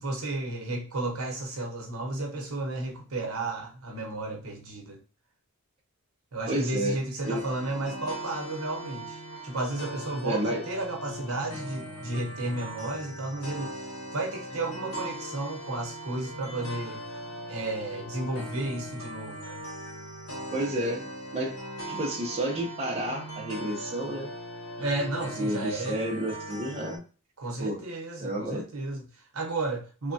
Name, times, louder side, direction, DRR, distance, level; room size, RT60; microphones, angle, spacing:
voice 1, 0.0-5.0 6.3-13.8 14.1-17.0 17.5-19.6 24.8-26.0 27.4-30.1, right 2 dB, 70° right, 0.8 m, -33 dB
voice 2, 6.5-7.0 7.2-7.4 10.2-10.6 20.5-21.1 21.3-21.6 21.9-24.3 25.4-27.0 27.6-27.8 28.2-28.6, right 1 dB, 25° right, 0.5 m, -30 dB
sound 1, 7.2-27.0, equal, 75° left, 0.9 m, -39 dB
3.2 x 2.1 x 2.5 m
head